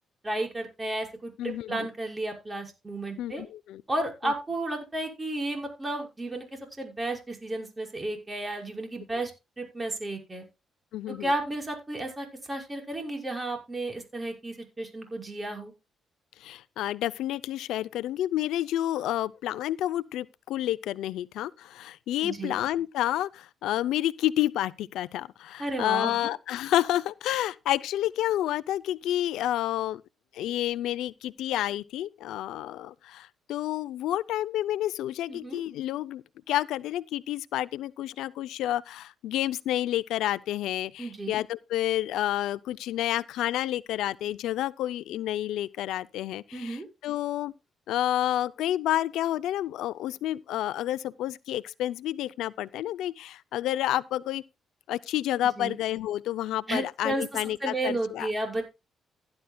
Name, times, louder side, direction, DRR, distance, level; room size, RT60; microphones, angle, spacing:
voice 1, 0.2-3.4 3.9-6.4 6.8-9.3 9.6-10.5 11.2-15.7 22.2-22.6 25.6-26.3 35.3-35.6 41.0-41.3 46.5-46.9 55.4-55.7 56.7-58.6, right 2 dB, 20° right, 5.8 m, -33 dB
voice 2, 1.4-1.9 3.2-3.8 4.2-4.3 10.9-11.3 16.4-30.0 30.3-47.5 47.9-54.4 54.9-58.3, left 13 dB, 85° left, 0.5 m, -29 dB
16.5 x 10.5 x 2.3 m
cardioid pair, 90°, 0 cm